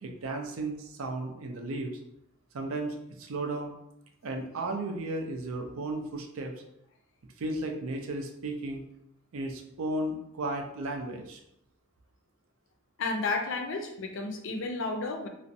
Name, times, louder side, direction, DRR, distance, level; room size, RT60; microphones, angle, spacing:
voice 1, 0.0-2.0 2.5-3.7 4.2-6.5 7.4-8.8 9.3-11.4, right 2 dB, 85° right, 3 dB, 0.5 m, -34 dB
voice 2, 13.0-15.3, left 3 dB, 65° left, 3 dB, 0.4 m, -32 dB
2.5 x 2.0 x 2.6 m, 0.78 s
head